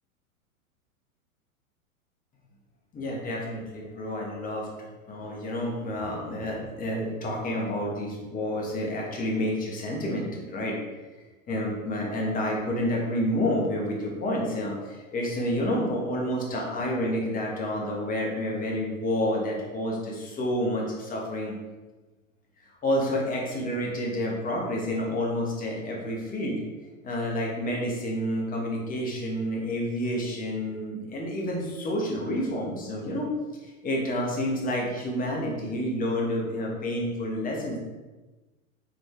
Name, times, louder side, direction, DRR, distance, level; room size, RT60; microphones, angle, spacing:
voice 1, 2.9-10.8 11.5-21.5 22.8-26.6 27.0-33.3 33.6-37.8, left 1 dB, 20° left, -1 dB, 1.1 m, -29 dB
4.7 x 3.2 x 3.3 m, 1.2 s
figure-of-eight pair, 100°, 43 cm